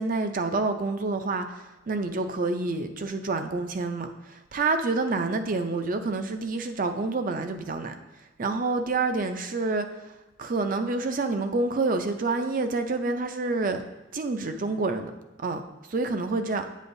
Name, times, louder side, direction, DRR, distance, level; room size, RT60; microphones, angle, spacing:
voice 1, 0.0-7.9 8.4-10.1 10.4-13.8 14.1-15.1 15.4-15.6 15.9-16.6, right 3 dB, 45° right, 7 dB, 0.5 m, -28 dB
8.2 x 7.7 x 2.6 m, 1.0 s
head